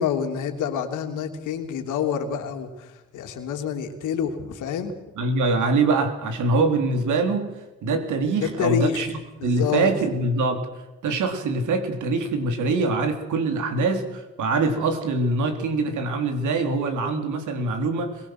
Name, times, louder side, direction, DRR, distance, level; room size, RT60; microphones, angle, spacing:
voice 1, 0.0-4.9 8.4-9.0 9.4-9.9, left 7 dB, 85° left, 5 dB, 3.1 m, -27 dB
voice 2, 5.2-7.5 7.8-9.1 9.4-10.7 11.0-18.3, right 3 dB, 75° right, 6 dB, 3.6 m, -24 dB
22.5 x 22.0 x 6.2 m, 1.0 s
cardioid pair, 90°, 30 cm